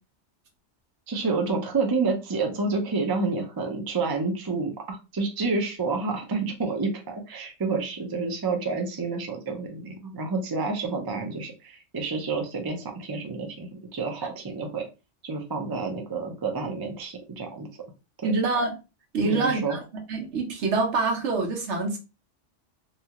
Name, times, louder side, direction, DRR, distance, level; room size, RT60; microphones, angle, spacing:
voice 1, 1.1-14.9 15.2-17.7 18.2-18.3 19.2-19.8, right 4 dB, 30° right, 0.4 m, -29 dB
voice 2, 18.2-18.8 19.1-19.8 20.1-22.0, right 3 dB, 70° right, 1.1 m, -25 dB
2.8 x 2.3 x 2.7 m
omnidirectional pair, 1.2 m